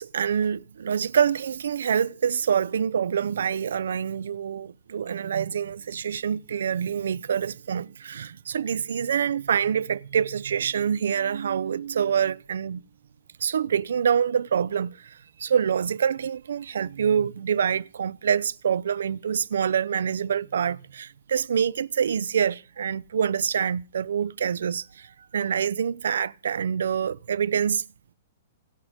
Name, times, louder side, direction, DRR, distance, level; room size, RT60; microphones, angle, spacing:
voice 1, 0.0-12.8 13.4-27.8, right 7 dB, 90° right, 0.8 m, -26 dB
27.5 x 11.5 x 3.7 m
hypercardioid pair, 180°, 0 cm